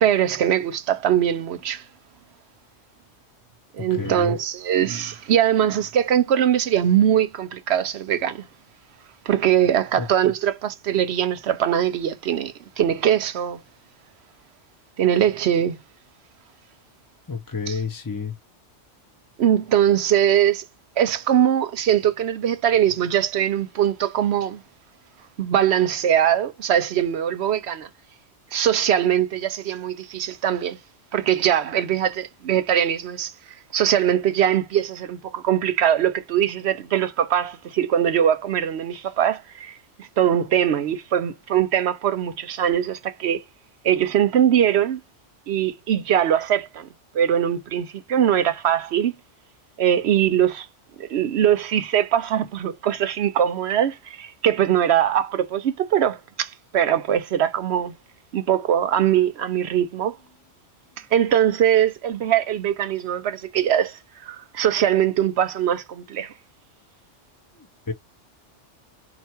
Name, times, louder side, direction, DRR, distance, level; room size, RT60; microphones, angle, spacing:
voice 1, 0.0-1.8 3.8-8.5 9.3-13.6 15.0-15.8 17.7-17.8 19.4-20.6 21.0-24.6 25.4-27.9 28.5-30.8 31.1-33.3 33.7-43.4 43.8-45.0 45.5-46.9 47.1-49.1 49.8-50.7 51.0-57.9 58.3-60.2 61.1-66.3, right 10 dB, 65° right, 0.8 m, -21 dB
voice 2, 4.0-4.3 10.0-10.1 17.3-18.3 67.9-68.0, left 5 dB, 20° left, 0.6 m, -29 dB
4.5 x 2.5 x 4.3 m
omnidirectional pair, 1.2 m